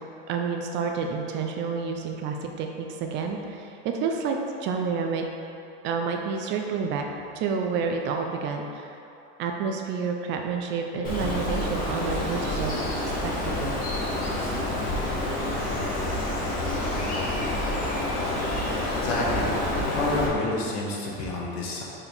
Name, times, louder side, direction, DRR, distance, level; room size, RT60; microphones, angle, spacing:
voice 1, 0.3-5.2 5.8-7.1 7.3-8.9 9.4-12.8 13.2-13.8, right 5 dB, 35° right, 3 dB, 0.4 m, -29 dB
Bird, 11.0-20.3, left 1 dB, 25° left, 1.2 m, -28 dB
voice 2, 19.0-19.6 19.9-21.8, left 2 dB, 75° left, -3 dB, 1.4 m, -28 dB
6.8 x 4.2 x 3.5 m, 2.7 s
cardioid pair, 160°, 32 cm